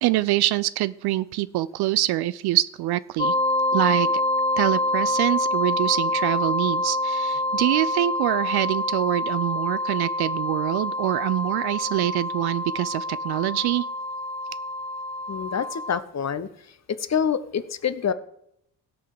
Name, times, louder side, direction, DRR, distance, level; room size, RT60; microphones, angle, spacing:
voice 1, 0.0-3.3 3.7-4.1 4.6-13.9, right 16 dB, 50° right, 17 dB, 0.5 m, -25 dB
sound 1, 3.2-16.0, left 1 dB, 15° left, 0.5 m, -26 dB
voice 2, 15.3-16.5 17.1-18.1, left 7 dB, 35° left, 14 dB, 1.0 m, -26 dB
16.5 x 5.6 x 6.6 m, 0.76 s
figure-of-eight pair, 40°, 49 cm